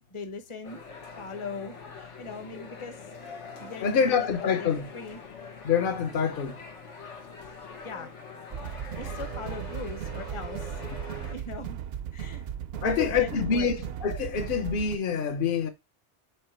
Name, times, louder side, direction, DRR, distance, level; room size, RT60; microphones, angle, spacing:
voice 1, 0.1-0.8 1.2-3.0 3.6-5.2 7.8-8.1 8.9-10.8 11.3-11.8 12.1-12.5 12.8-13.7, left 4 dB, 30° left, 1.0 m, -39 dB
sound 1, 0.6-11.3, left 5 dB, 80° left, 1.6 m, -44 dB
voice 2, 3.8-4.9 5.6-6.6 12.8-15.7, left 6 dB, 50° left, 1.0 m, -26 dB
sound 2, 8.5-15.0, right 9 dB, 65° right, 0.7 m, -36 dB
8.1 x 2.9 x 4.3 m
omnidirectional pair, 1.2 m